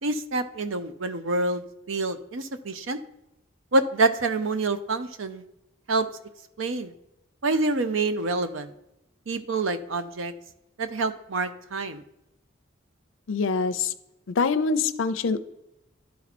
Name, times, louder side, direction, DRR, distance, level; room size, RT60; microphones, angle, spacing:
voice 1, 0.0-3.0 3.7-5.4 5.9-6.1 6.6-6.9 7.4-8.7 9.3-10.3 10.8-12.0, right 3 dB, 90° right, 11 dB, 0.7 m, -27 dB
voice 2, 13.3-13.9 14.4-15.4, left 4 dB, 85° left, 14 dB, 0.5 m, -24 dB
11.5 x 4.3 x 4.2 m, 0.91 s
head